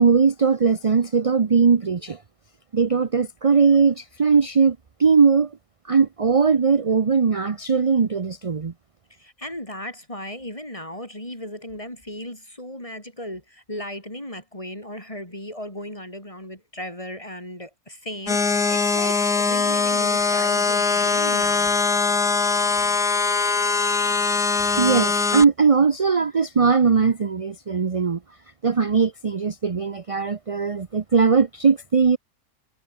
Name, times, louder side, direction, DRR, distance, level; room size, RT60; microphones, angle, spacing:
voice 1, 0.0-2.2 2.7-5.5 5.9-8.7 24.8-28.2 28.6-32.2, right 5 dB, 35° right, 0.5 m, -19 dB
voice 2, 9.1-21.7, left 1 dB, 20° left, 7.4 m, -36 dB
sound 1, 18.3-25.5, left 4 dB, 75° left, 3.7 m, -21 dB
omnidirectional pair, 1.7 m